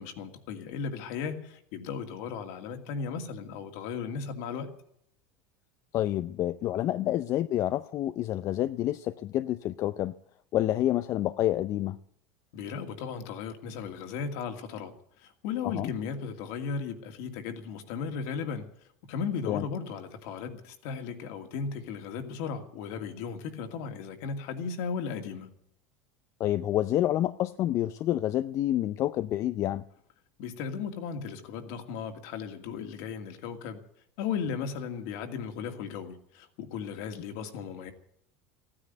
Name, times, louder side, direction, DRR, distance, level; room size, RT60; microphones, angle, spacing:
voice 1, 0.0-4.7 12.5-14.9 15.2-18.7 19.1-25.5 30.4-33.8 34.2-37.9, left 6 dB, 70° left, 2.4 m, -36 dB
voice 2, 5.9-10.1 10.5-12.0 15.6-15.9 19.5-19.6 26.4-29.8, left 13 dB, 50° left, 0.6 m, -28 dB
15.0 x 10.0 x 9.5 m
supercardioid pair, 110°, 7 cm